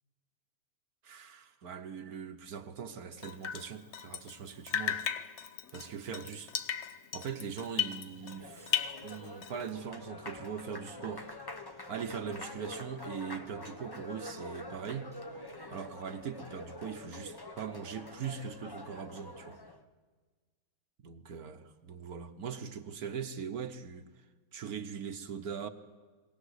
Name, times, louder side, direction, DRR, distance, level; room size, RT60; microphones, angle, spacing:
voice 1, 1.0-5.0 5.7-6.5 7.1-11.3 11.9-19.6 21.0-24.0 24.5-25.7, right 7 dB, 65° right, 8 dB, 1.4 m, -41 dB
Drip, 3.2-4.4 4.7-8.4 8.7-9.7, left 9 dB, 55° left, 0.9 m, -36 dB
Applause, 8.0-19.8, left 2 dB, 20° left, 0.7 m, -46 dB
22.0 x 17.5 x 8.1 m, 1.4 s
omnidirectional pair, 1.8 m